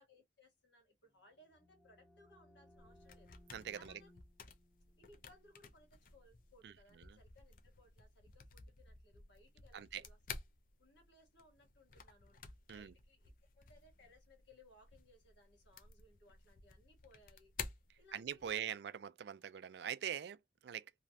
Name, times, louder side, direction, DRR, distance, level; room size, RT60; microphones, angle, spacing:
voice 1, 0.0-3.3 3.7-4.1 5.0-10.4 10.8-12.4 12.7-17.5 18.0-18.9, left 1 dB, 75° left, 1.5 m, -66 dB
sound 1, 1.1-6.7, left 1 dB, ahead, 0.6 m, -67 dB
sound 2, 2.7-18.6, left 5 dB, 45° left, 0.5 m, -54 dB
voice 2, 3.5-3.9 6.6-7.2 9.7-10.0 12.7-12.9 18.1-20.9, right 9 dB, 65° right, 0.3 m, -43 dB
3.1 x 2.3 x 2.6 m
head